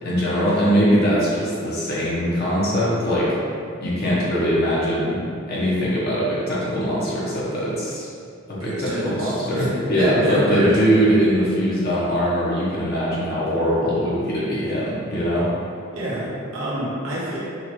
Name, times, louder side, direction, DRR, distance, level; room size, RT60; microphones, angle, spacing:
voice 1, 0.0-3.3 3.8-5.2 5.5-8.1 8.5-9.6 9.9-15.5, equal, 50° left, -8 dB, 0.9 m, -21 dB
voice 2, 8.6-10.8 15.9-17.4, equal, 70° right, -8 dB, 1.1 m, -26 dB
5.7 x 2.4 x 3.0 m, 2.4 s
head